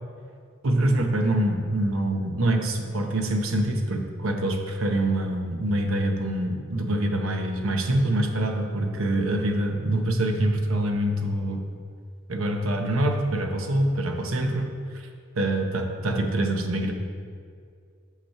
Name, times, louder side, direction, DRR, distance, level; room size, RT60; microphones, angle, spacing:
voice 1, 0.6-11.6 12.3-14.7 15.4-16.9, right 1 dB, 75° right, 4 dB, 0.8 m, -25 dB
5.9 x 5.9 x 5.6 m, 2.2 s
head